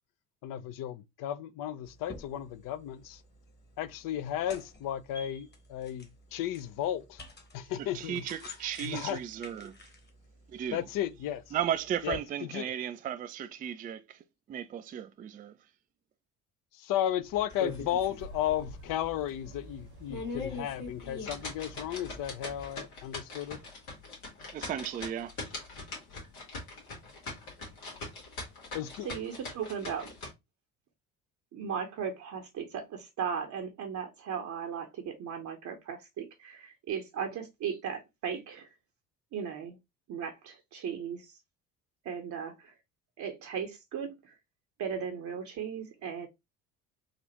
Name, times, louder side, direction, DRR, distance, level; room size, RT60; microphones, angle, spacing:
voice 1, 0.4-3.2 3.8-7.2 7.5-8.3 8.8-9.2 10.7-11.4 12.0-12.7 16.7-23.6 28.7-29.1, left 11 dB, 50° left, 0.6 m, -34 dB
sound 1, 1.8-12.2, left 2 dB, 25° left, 1.2 m, -52 dB
voice 2, 7.8-9.7 10.5-10.9 11.5-14.2 14.5-15.5 24.5-25.3, right 9 dB, 20° right, 0.3 m, -35 dB
sound 2, 17.1-22.8, right 2 dB, 65° right, 1.1 m, -50 dB
sound 3, 17.5-18.2 18.6-18.7 19.2-19.3 19.9-30.3, left 3 dB, 85° left, 1.6 m, -41 dB
voice 3, 29.0-30.0 31.5-38.7 39.3-39.8 40.1-41.3 42.0-42.7 43.2-44.3 44.8-46.3, right 7 dB, 45° right, 0.8 m, -37 dB
4.1 x 2.4 x 2.9 m
hypercardioid pair, 55°, 43 cm